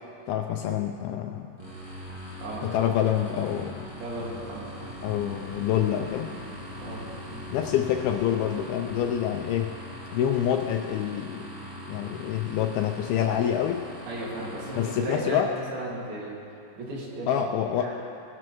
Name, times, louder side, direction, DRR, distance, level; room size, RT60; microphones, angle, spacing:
voice 1, 0.3-1.5 2.6-3.9 5.0-6.3 7.5-9.8 10.1-11.5 11.9-13.9 14.8-15.5 17.3-17.9, left 10 dB, 85° left, 4 dB, 2.2 m, -26 dB
sound 1, 1.6-15.0, equal, 35° right, 0.7 m, -42 dB
sound 2, 2.3-13.5 14.1-14.2, equal, 10° right, 2.0 m, -48 dB
voice 2, 2.4-2.8 4.0-4.7 6.7-7.0 14.1-16.4 16.8-17.5 17.8-18.0, right 1 dB, 70° right, -4 dB, 3.8 m, -35 dB
19.5 x 12.5 x 3.0 m, 2.6 s
omnidirectional pair, 4.7 m